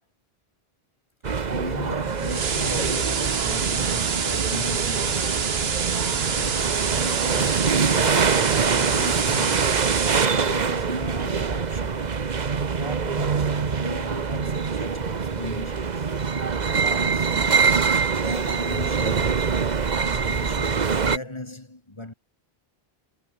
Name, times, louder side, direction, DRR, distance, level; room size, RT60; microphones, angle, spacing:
sound 1, 1.2-21.2, right 5 dB, 45° right, 1.1 m, -24 dB
voice 1, 1.5-5.6 5.8-10.1 10.4-12.3 12.8-16.1 16.7-17.8 18.2-19.6 20.0-22.1, left 2 dB, 25° left, 2.2 m, -37 dB
sound 2, 2.2-10.2, right 6 dB, 75° right, 1.4 m, -27 dB
omnidirectional pair, 1.0 m